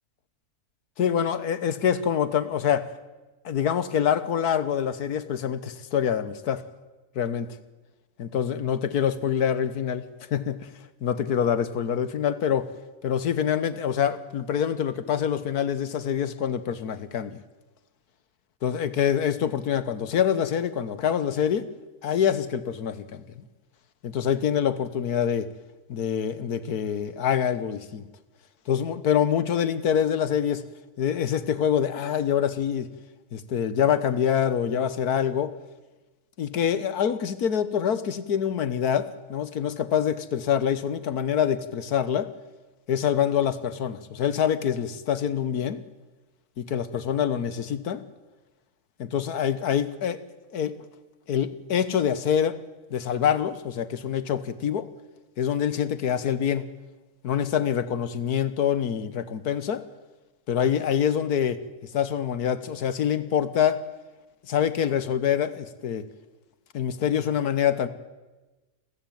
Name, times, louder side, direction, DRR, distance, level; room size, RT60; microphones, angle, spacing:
voice 1, 1.0-2.9 3.5-6.6 7.2-7.5 8.2-10.7 11.0-12.7 13.0-17.4 18.6-21.7 22.0-23.2 24.0-25.5 25.9-28.0 28.7-30.6 31.0-32.9 33.3-35.5 36.4-42.3 42.9-45.8 46.6-48.0 49.0-50.2 50.5-50.8 51.3-52.6 52.9-54.9 55.4-56.7 57.2-59.8 60.5-61.6 61.9-63.8 64.5-66.1 66.7-67.9, left 8 dB, 75° left, 14 dB, 1.7 m, -25 dB
28.0 x 14.5 x 9.3 m, 1.2 s
omnidirectional pair, 1.6 m